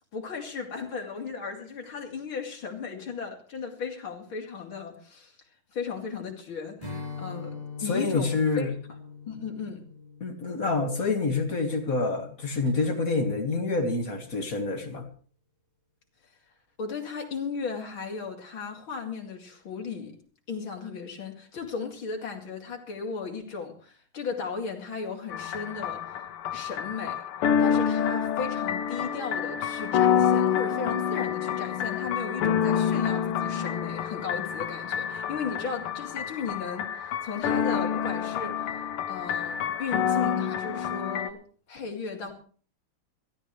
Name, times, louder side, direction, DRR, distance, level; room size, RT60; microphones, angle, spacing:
voice 1, 0.1-5.3 5.7-8.7 9.3-9.8 16.8-20.2 20.5-26.2 26.5-27.2 27.6-41.4 41.7-42.3, left 5 dB, 65° left, 3.5 m, -36 dB
Strum, 6.8-12.2, left 4 dB, 20° right, 4.1 m, -42 dB
voice 2, 7.9-8.7 10.2-15.1 26.5-26.6, left 3 dB, 40° left, 2.3 m, -27 dB
sound 1, 25.3-41.3, left 8 dB, 85° left, 1.9 m, -28 dB
22.0 x 14.5 x 3.2 m
omnidirectional pair, 2.4 m